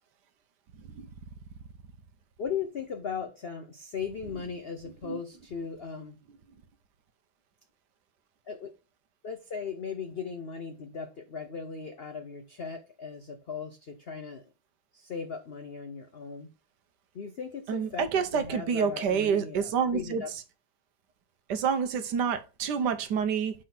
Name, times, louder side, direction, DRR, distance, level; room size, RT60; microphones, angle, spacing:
voice 1, 2.4-6.2 8.5-8.7 9.2-14.5 14.9-16.5 17.1-20.3, left 6 dB, 80° left, 0.5 m, -38 dB
voice 2, 17.7-20.2 21.5-23.5, right 7 dB, 70° right, 1.2 m, -28 dB
5.4 x 3.7 x 5.8 m
omnidirectional pair, 2.1 m